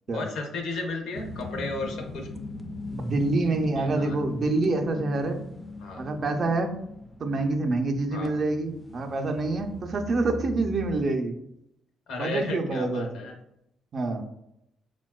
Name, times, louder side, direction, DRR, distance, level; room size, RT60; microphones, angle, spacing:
voice 1, 0.1-2.3 3.8-4.2 5.8-6.0 8.1-8.3 12.1-13.4, left 3 dB, 80° left, 2 dB, 0.6 m, -34 dB
sound 1, 1.1-11.0, left 1 dB, 25° left, 0.3 m, -40 dB
voice 2, 2.9-5.4 6.0-6.7 7.2-11.4 12.1-13.2 13.9-14.2, right 2 dB, 50° right, 5 dB, 0.4 m, -27 dB
4.0 x 2.2 x 2.2 m, 0.80 s
cardioid pair, 90°, 0 cm